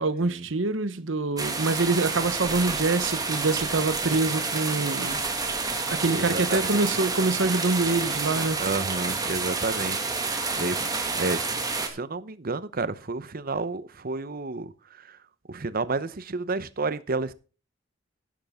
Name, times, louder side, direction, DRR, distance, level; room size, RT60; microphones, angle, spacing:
voice 1, 0.0-5.2 5.9-8.6, right 3 dB, 85° right, 1.0 m, -25 dB
sound 1, 1.4-11.9, right 4 dB, 20° right, 2.1 m, -29 dB
voice 2, 6.1-6.8 8.6-10.0 10.6-10.9 11.2-11.4 11.8-15.2 15.5-17.3, right 3 dB, 50° right, 0.9 m, -31 dB
11.5 x 10.5 x 3.6 m
head